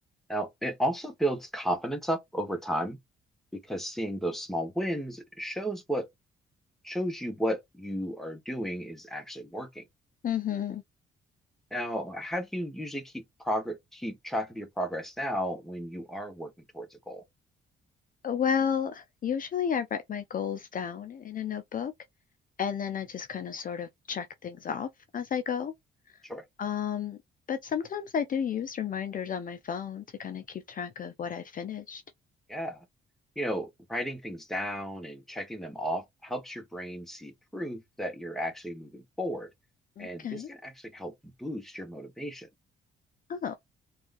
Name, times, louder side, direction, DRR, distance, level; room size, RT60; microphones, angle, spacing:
voice 1, 0.3-3.0 3.5-6.1 6.8-9.8 11.7-17.2 26.2-26.4 32.5-32.8 33.4-39.5 40.0-42.5, equal, ahead, 1.0 m, -34 dB
voice 2, 10.2-10.8 18.2-21.9 22.6-25.7 26.6-27.2 27.5-32.0 40.0-40.5 43.3-43.6, left 8 dB, 45° left, 0.5 m, -32 dB
3.4 x 2.4 x 2.5 m
cardioid pair, 90°, 20 cm